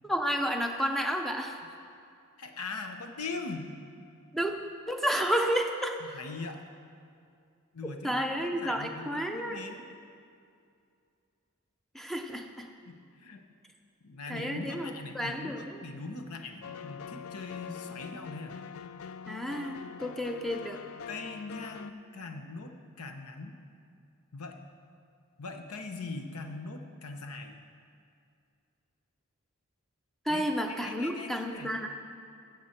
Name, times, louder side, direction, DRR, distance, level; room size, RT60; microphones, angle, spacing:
voice 1, 0.0-1.6 4.3-4.5 4.9-6.0 8.0-9.6 11.9-12.7 14.3-15.8 19.3-20.8 30.3-31.9, equal, ahead, 4 dB, 0.6 m, -31 dB
voice 2, 2.4-3.7 6.0-6.6 7.7-9.8 12.9-13.4 14.0-18.6 21.1-23.6 24.3-24.6 25.4-27.6 30.3-31.7, left 3 dB, 90° left, 5 dB, 0.9 m, -41 dB
sound 1, 16.6-21.9, left 7 dB, 70° left, 0.4 m, -44 dB
14.0 x 7.8 x 4.4 m, 2.4 s
head